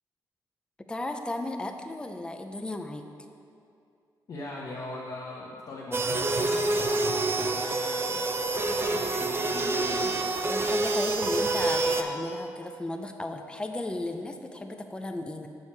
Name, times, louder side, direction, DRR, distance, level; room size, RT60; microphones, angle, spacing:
voice 1, 0.9-3.0 10.5-15.5, left 2 dB, 10° left, 5 dB, 0.5 m, -35 dB
voice 2, 4.3-8.2 8.9-10.2, left 2 dB, 55° left, -5 dB, 1.0 m, -40 dB
sound 1, 5.9-12.0, right 2 dB, 30° right, 0.6 m, -27 dB
6.8 x 6.3 x 4.3 m, 2.5 s
cardioid pair, 90°, 8 cm